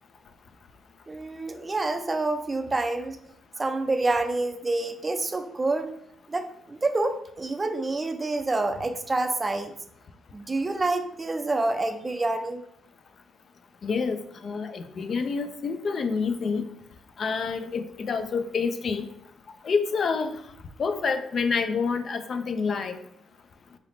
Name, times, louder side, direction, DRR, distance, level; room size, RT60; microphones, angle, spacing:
voice 1, 1.1-3.2 3.6-5.9 6.3-9.7 10.3-12.6, right 2 dB, 25° right, 7 dB, 0.4 m, -27 dB
voice 2, 13.8-16.6 17.2-19.1 19.6-20.3 20.8-23.0, left 5 dB, 50° left, 9 dB, 0.3 m, -28 dB
4.0 x 3.3 x 2.5 m, 0.74 s
cardioid pair, 90°, 0 cm